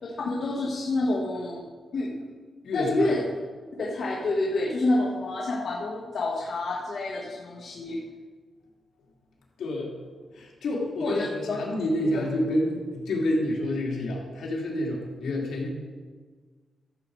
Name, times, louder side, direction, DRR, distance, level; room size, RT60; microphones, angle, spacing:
voice 1, 0.0-1.6 1.9-2.1 2.7-3.2 3.8-8.0 11.0-11.6, left 2 dB, 55° left, -4 dB, 1.6 m, -28 dB
voice 2, 2.6-3.2 9.6-9.9 10.3-15.7, left 1 dB, 75° left, -2 dB, 3.0 m, -28 dB
13.5 x 7.8 x 4.8 m, 1.5 s
cardioid pair, 110°, 0 cm